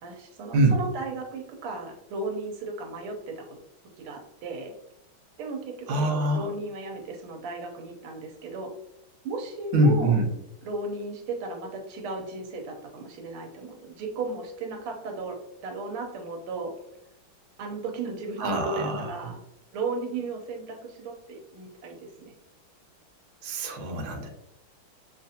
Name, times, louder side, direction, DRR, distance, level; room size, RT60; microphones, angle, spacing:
voice 1, 0.0-3.6 4.0-4.7 5.4-8.7 9.2-10.2 10.6-15.4 15.6-16.7 17.6-19.4 19.7-22.3, right 3 dB, 85° right, 2 dB, 1.6 m, -35 dB
voice 2, 5.9-6.5 9.7-10.3 18.4-19.1 23.4-24.3, right 1 dB, 60° right, 0 dB, 1.2 m, -24 dB
6.6 x 2.5 x 2.7 m, 0.83 s
omnidirectional pair, 2.3 m